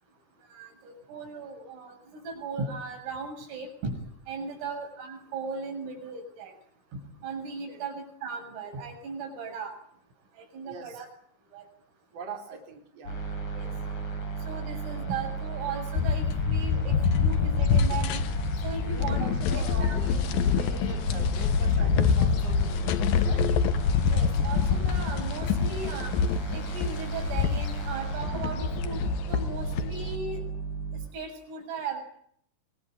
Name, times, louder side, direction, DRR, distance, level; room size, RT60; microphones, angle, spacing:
voice 1, 0.5-4.0 4.3-6.5 6.9-9.7 10.4-11.1 11.5-11.7 13.6-13.7 14.4-18.2 18.6-20.0 24.0-26.2 26.5-29.0 29.3-30.4 31.1-32.0, right 4 dB, 80° right, 5 dB, 9.5 m, -37 dB
voice 2, 10.6-11.0 12.1-13.2 18.9-23.5 25.0-25.1, right 5 dB, 30° right, 3 dB, 4.9 m, -43 dB
sound 1, 13.1-31.1, right 5 dB, 40° left, 9.0 m, -35 dB
sound 2, 16.0-30.2, left 6 dB, 70° left, 2.3 m, -26 dB
26.5 x 23.0 x 9.1 m, 0.68 s
omnidirectional pair, 5.8 m